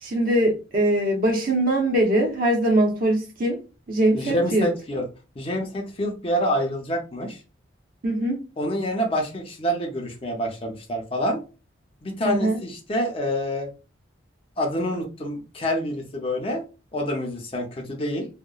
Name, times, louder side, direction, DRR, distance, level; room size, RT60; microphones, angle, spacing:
voice 1, 0.0-3.6 3.9-4.7 8.0-8.4 12.3-12.6, right 1 dB, 50° right, 1 dB, 0.7 m, -22 dB
voice 2, 4.1-5.0 5.4-7.4 8.6-11.4 12.0-13.7 14.6-16.6 16.9-18.3, equal, 30° left, 1 dB, 0.5 m, -27 dB
2.8 x 2.0 x 2.3 m, 0.32 s
head